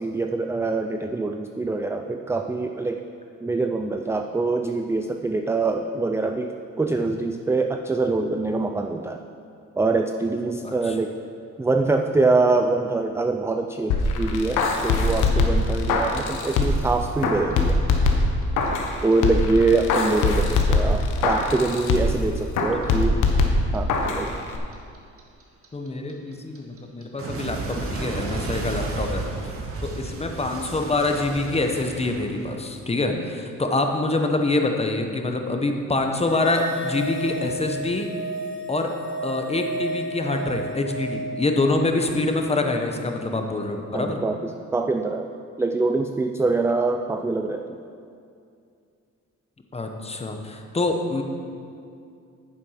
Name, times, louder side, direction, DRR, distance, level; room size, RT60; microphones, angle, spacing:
voice 1, 0.0-3.0 3.4-9.2 9.8-11.2 11.6-17.8 19.0-23.2 23.7-24.3 33.1-33.2 43.9-44.4 44.7-45.3 45.6-47.6, right 3 dB, 10° right, 5 dB, 0.4 m, -24 dB
voice 2, 10.6-11.0 15.8-15.9 19.7-19.8 20.1-20.2 22.7-22.8 24.3-24.5 25.7-29.2 29.8-38.1 38.7-38.9 39.2-44.2 49.7-51.2, left 2 dB, 20° left, 4 dB, 1.1 m, -25 dB
sound 1, 13.9-16.9 17.2-18.9 19.2-22.2 22.5-24.2 24.5-24.6, left 3 dB, 90° left, 1.1 m, -22 dB
Clock, 17.5-20.5 20.8-23.8 24.0-32.9, right 3 dB, 50° right, 1.7 m, -33 dB
sound 2, 36.2-42.8, equal, 55° left, 2.5 m, -33 dB
9.6 x 7.3 x 5.8 m, 2.4 s
cardioid pair, 90°, 30 cm